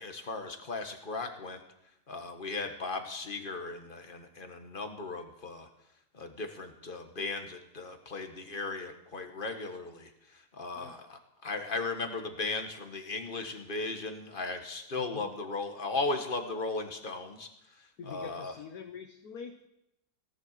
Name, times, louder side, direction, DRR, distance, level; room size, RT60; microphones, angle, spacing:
voice 1, 0.0-1.6 2.1-5.7 6.1-17.5 18.1-18.5, left 3 dB, 30° left, 5 dB, 1.7 m, -37 dB
voice 2, 15.0-15.3 18.0-19.7, left 6 dB, 65° left, 5 dB, 1.4 m, -45 dB
17.5 x 11.0 x 6.7 m, 0.85 s
omnidirectional pair, 1.8 m